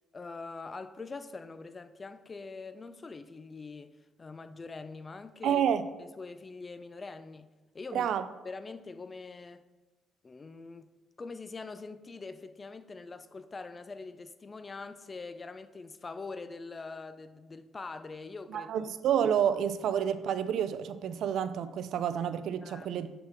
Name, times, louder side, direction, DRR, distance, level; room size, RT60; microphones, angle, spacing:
voice 1, 0.1-5.6 6.0-8.1 8.4-9.6 10.2-10.9 11.2-18.9 22.6-22.9, left 3 dB, 25° left, 0.3 m, -44 dB
voice 2, 5.4-5.9 7.9-8.3 18.5-23.1, right 8 dB, 70° right, 0.3 m, -29 dB
6.6 x 3.6 x 4.3 m
cardioid pair, 120°, 0 cm